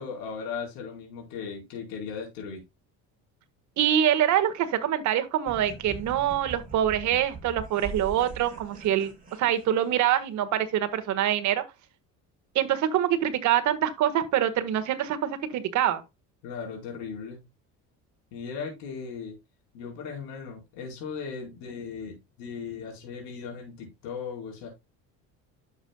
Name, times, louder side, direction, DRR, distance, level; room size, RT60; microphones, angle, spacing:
voice 1, 0.0-2.6 16.4-17.4 18.3-19.3 19.7-24.7, left 6 dB, 90° left, 4.6 m, -37 dB
voice 2, 3.8-9.1 9.4-11.6 12.5-16.0, right 11 dB, 60° right, 1.6 m, -25 dB
sound 1, 5.5-10.2, right 4 dB, 25° right, 3.6 m, -42 dB
11.0 x 7.3 x 2.3 m
cardioid pair, 125°, 34 cm